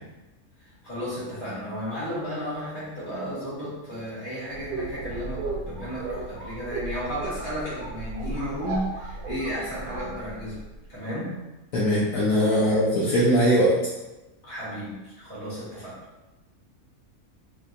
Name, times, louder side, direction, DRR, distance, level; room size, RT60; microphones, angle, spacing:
voice 1, 0.8-10.6 10.9-11.3 12.6-12.7 14.4-16.0, equal, 30° left, -11 dB, 1.7 m, -33 dB
sound 1, 4.5-10.8, right 3 dB, 80° right, 1.2 m, -35 dB
voice 2, 11.7-13.8, equal, 70° left, -7 dB, 1.1 m, -20 dB
3.4 x 2.8 x 2.5 m, 1.0 s
omnidirectional pair, 1.5 m